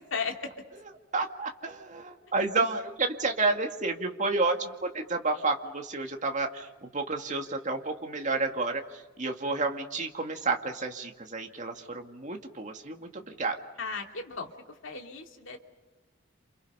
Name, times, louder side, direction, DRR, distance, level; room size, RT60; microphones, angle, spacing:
voice 1, 0.1-0.5 13.8-14.5 14.8-15.6, left 4 dB, 60° left, 3 dB, 2.7 m, -35 dB
voice 2, 1.1-8.8 9.2-13.6, right 3 dB, 35° right, 3 dB, 2.2 m, -30 dB
29.5 x 27.5 x 5.6 m, 1.2 s
head